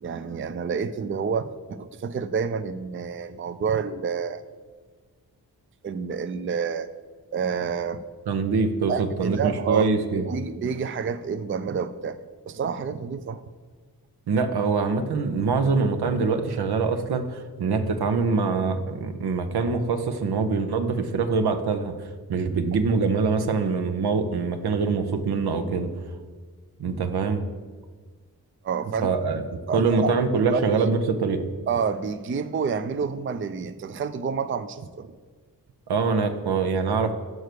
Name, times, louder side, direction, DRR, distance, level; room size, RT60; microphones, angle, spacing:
voice 1, 0.0-4.4 5.8-6.9 7.3-8.0 8.9-9.9 10.2-12.2 12.5-13.4 28.6-29.1 29.7-30.1 30.5-30.9 31.7-35.2, right 6 dB, 35° right, 11 dB, 0.4 m, -28 dB
voice 2, 8.3-10.3 14.3-25.9 26.8-27.4 29.0-29.4 29.7-31.4 35.9-37.1, right 4 dB, 80° right, 7 dB, 0.8 m, -24 dB
6.4 x 4.7 x 6.6 m, 1.5 s
cardioid pair, 45°, 38 cm